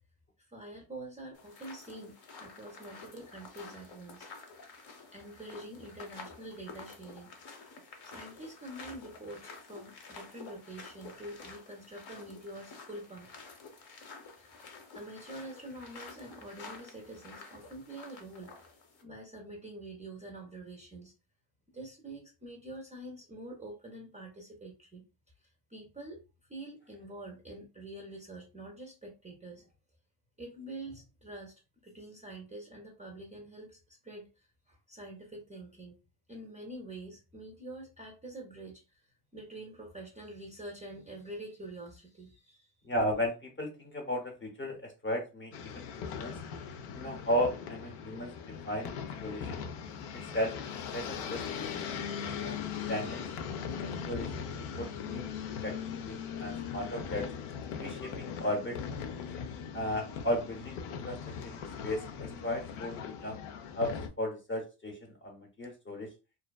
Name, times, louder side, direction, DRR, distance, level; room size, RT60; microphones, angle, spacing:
voice 1, 0.5-4.3 5.1-7.3 8.0-13.3 14.4-18.6 19.0-21.1 21.7-25.0 25.7-26.2 26.5-29.7 30.4-31.5 31.8-36.0 36.3-42.9, right 1 dB, 15° right, -1 dB, 0.4 m, -46 dB
sound 1, 1.3-19.0, left 4 dB, 50° left, 0.8 m, -50 dB
voice 2, 42.8-46.4 46.9-48.3 48.7-48.9 49.2-49.6 50.1-50.5 50.9-52.6 52.9-53.2 54.0-54.5 54.8-57.3 57.8-58.8 59.7-63.4 63.7-66.1, equal, 25° left, 2 dB, 0.7 m, -35 dB
sound 2, 45.5-64.1, left 7 dB, 85° left, 0.6 m, -39 dB
2.6 x 2.2 x 2.2 m, 0.30 s
cardioid pair, 115°, 49 cm